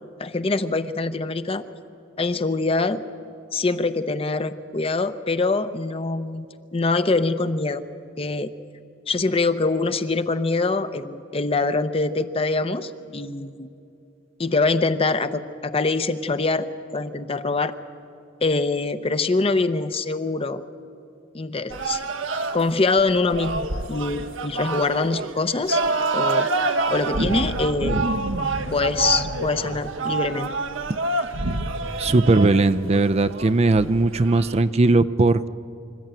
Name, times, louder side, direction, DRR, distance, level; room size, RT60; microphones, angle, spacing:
voice 1, 0.2-1.6 2.2-3.0 3.5-6.5 6.7-7.8 8.2-8.5 9.1-13.7 14.4-17.7 18.4-20.6 21.3-22.0 22.5-25.8 26.1-28.1 28.7-30.5, left 3 dB, 30° left, 11 dB, 0.7 m, -24 dB
sound 1, 21.7-34.6, right 3 dB, 75° right, 1.1 m, -27 dB
voice 2, 32.0-35.5, right 2 dB, 35° right, 11 dB, 0.5 m, -18 dB
26.0 x 14.0 x 9.0 m, 2.6 s
head